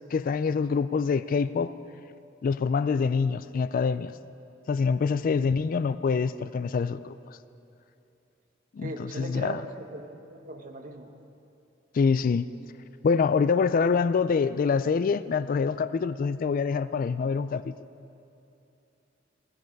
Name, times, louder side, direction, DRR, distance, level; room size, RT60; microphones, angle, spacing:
voice 1, 0.1-1.7 2.4-4.1 4.7-7.1 8.7-8.9 9.2-9.6 11.9-12.5 13.0-17.7, left 5 dB, 45° left, 15 dB, 0.3 m, -25 dB
voice 2, 8.8-11.1, right 2 dB, 45° right, 5 dB, 1.0 m, -39 dB
17.0 x 12.5 x 5.3 m, 2.8 s
head